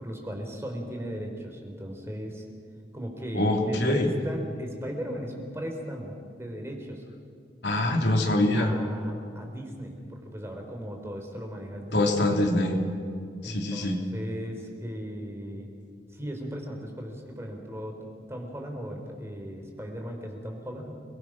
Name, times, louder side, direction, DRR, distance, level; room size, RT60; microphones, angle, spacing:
voice 1, 0.0-2.5 2.9-7.0 8.5-12.0 13.4-15.7 16.1-18.0 18.3-20.9, equal, 15° right, 2 dB, 3.7 m, -37 dB
voice 2, 3.3-4.1 7.6-8.7 11.9-12.8 13.4-14.0, left 1 dB, 75° left, 1 dB, 3.4 m, -24 dB
29.0 x 21.5 x 6.2 m, 2.3 s
head